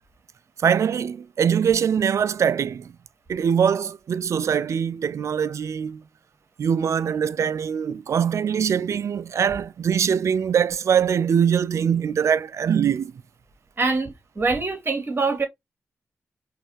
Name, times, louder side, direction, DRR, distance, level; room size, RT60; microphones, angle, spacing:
voice 1, 0.6-2.9 3.3-6.0 6.6-13.1, right 7 dB, 65° right, 0.4 m, -22 dB
voice 2, 13.8-15.5, right 3 dB, 40° right, 2.4 m, -24 dB
4.6 x 3.2 x 3.2 m
cardioid pair, 50°, 5 cm